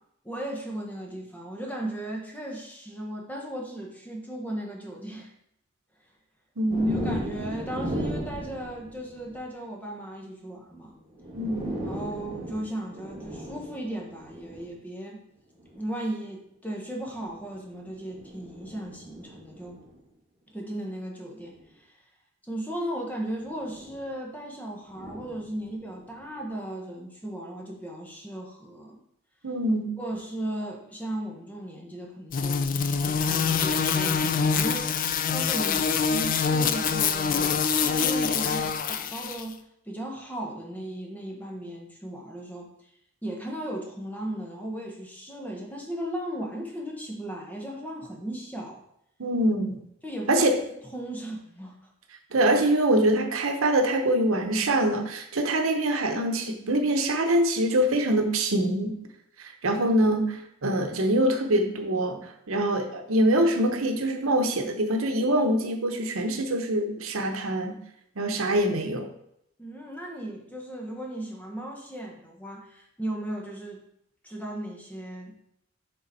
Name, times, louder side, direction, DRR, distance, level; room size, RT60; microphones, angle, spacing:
voice 1, 0.2-5.3 6.9-10.9 11.9-15.2 15.7-19.8 20.5-22.0 22.5-29.0 30.0-32.7 33.0-42.7 43.2-48.8 50.0-50.5 50.9-51.8 69.6-73.8 74.2-75.4, right 1 dB, 10° left, 0 dB, 1.0 m, -36 dB
voice 2, 6.6-7.3 11.3-11.7 29.4-30.0 49.2-49.8 50.3-50.6 52.3-58.9 59.4-67.8 68.2-69.1, right 1 dB, 85° right, 5 dB, 0.9 m, -24 dB
sound 1, 6.7-9.4 10.7-10.8 11.1-14.7 15.6-15.9 17.0-20.0 21.5-21.6 23.3-24.1 24.9-26.3, right 1 dB, 20° right, 1.5 m, -37 dB
sound 2, 32.3-39.4, left 6 dB, 40° left, 0.4 m, -25 dB
7.0 x 3.9 x 4.1 m, 0.76 s
head